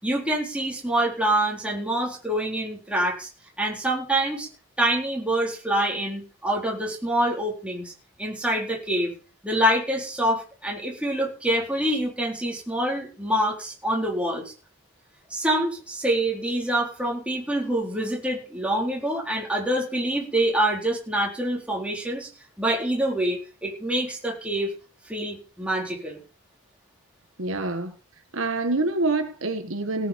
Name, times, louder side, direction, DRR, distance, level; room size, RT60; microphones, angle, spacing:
voice 1, 0.0-3.3 3.6-4.5 4.8-7.9 8.2-9.1 9.4-14.4 15.3-22.3 22.6-24.7 25.1-26.2, right 1 dB, 5° right, -2 dB, 4.2 m, -26 dB
voice 2, 27.4-27.9 28.3-30.1, right 2 dB, 70° right, 7 dB, 1.6 m, -26 dB
17.5 x 8.2 x 5.3 m, 0.35 s
head